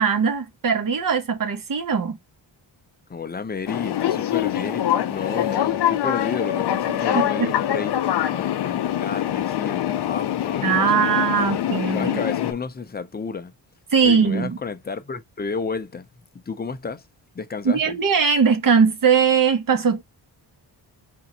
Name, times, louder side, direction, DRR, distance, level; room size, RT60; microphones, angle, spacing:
voice 1, 0.0-2.2 7.1-7.5 10.6-12.2 13.9-14.6 17.6-20.0, right 6 dB, 50° right, 1.0 m, -20 dB
voice 2, 3.1-11.0 11.9-13.5 14.0-16.1 16.3-17.1 17.3-18.0, left 5 dB, 20° left, 0.6 m, -31 dB
sound 1, 3.7-12.5, left 11 dB, 65° left, 0.6 m, -24 dB
3.7 x 2.7 x 4.1 m
cardioid pair, 75°, 44 cm